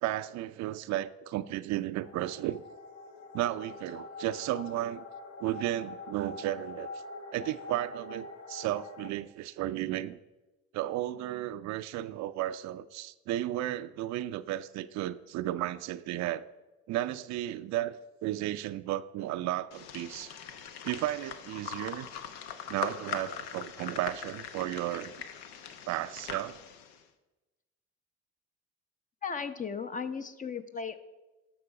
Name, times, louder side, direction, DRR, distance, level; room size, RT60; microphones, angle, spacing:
voice 1, 0.0-2.6 3.3-5.0 5.4-6.9 7.3-10.2 10.7-16.5 16.9-20.3 20.8-22.1 22.7-25.1 25.9-26.6, right 14 dB, 60° right, 0.5 m, -34 dB
sound 1, 2.0-9.1, left 3 dB, 60° left, 1.2 m, -45 dB
sound 2, 19.7-27.0, left 8 dB, 80° left, 0.8 m, -41 dB
voice 2, 29.2-31.0, left 6 dB, 25° left, 0.7 m, -36 dB
11.5 x 6.1 x 4.8 m
supercardioid pair, 75°, 31 cm